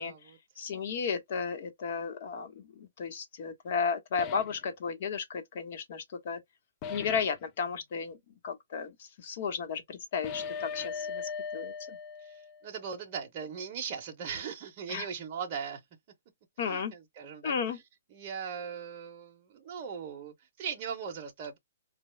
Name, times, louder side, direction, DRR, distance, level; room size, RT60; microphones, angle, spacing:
voice 1, 0.0-0.4 12.2-15.8 16.6-17.8 18.1-21.6, right 7 dB, 35° right, 0.7 m, -39 dB
voice 2, 0.6-6.4 6.9-8.2 8.4-11.2 11.5-12.0 14.9-15.1 16.6-16.9 17.4-17.8, left 6 dB, 50° left, 1.0 m, -34 dB
sound 1, 4.2-4.6 6.8-7.4 10.2-12.7, left 6 dB, 25° left, 0.3 m, -39 dB
3.7 x 2.2 x 3.1 m
hypercardioid pair, 155°, 0 cm